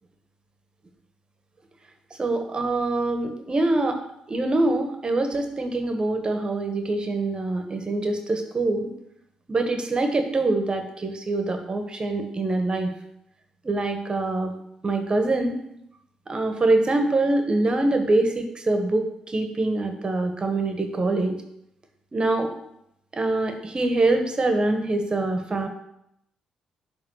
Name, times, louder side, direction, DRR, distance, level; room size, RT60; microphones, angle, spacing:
voice 1, 2.2-4.0 4.3-8.9 9.5-12.9 13.6-14.5 14.8-15.6 16.3-21.3 22.1-22.5 23.1-25.7, right 2 dB, 35° right, 5 dB, 1.6 m, -24 dB
11.0 x 3.7 x 6.4 m, 0.79 s
supercardioid pair, 50°, 3 cm